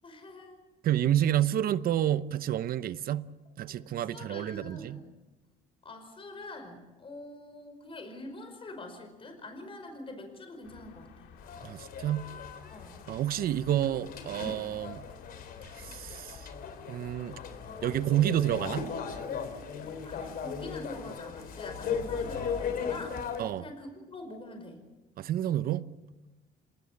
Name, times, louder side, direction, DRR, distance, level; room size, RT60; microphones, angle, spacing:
voice 1, 0.0-0.6 3.7-5.1 5.8-11.3 12.7-13.0 20.0-23.2 23.6-24.8, left 2 dB, 30° left, 5.2 m, -45 dB
voice 2, 0.8-3.3 3.6-5.0 11.6-12.3 13.1-15.0 15.8-16.5 16.9-17.4 17.8-18.9 23.4-23.7 25.2-25.9, right 11 dB, 60° right, 0.9 m, -29 dB
sound 1, 10.6-23.0, left 6 dB, 85° left, 2.7 m, -50 dB
sound 2, 11.4-23.4, left 6 dB, 60° left, 3.5 m, -38 dB
27.0 x 19.0 x 8.6 m
cardioid pair, 110°, 17 cm